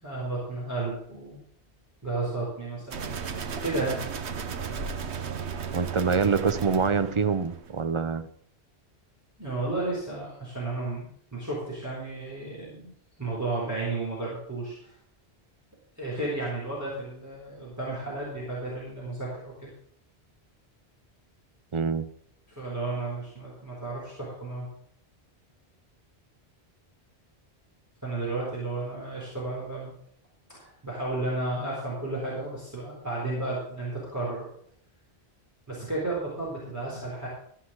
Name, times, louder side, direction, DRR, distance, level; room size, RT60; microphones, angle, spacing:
voice 1, 0.0-1.4 2.0-3.1 3.6-4.0 9.4-12.9 13.2-14.9 16.0-19.7 22.5-24.7 28.0-29.9 30.5-34.5 35.7-37.3, right 2 dB, 15° right, -6 dB, 4.1 m, -33 dB
sound 1, 2.9-7.8, right 6 dB, 80° right, 1.2 m, -35 dB
voice 2, 5.7-8.3 21.7-22.1, right 5 dB, 35° right, 12 dB, 0.5 m, -25 dB
14.0 x 5.8 x 7.6 m, 0.64 s
omnidirectional pair, 1.1 m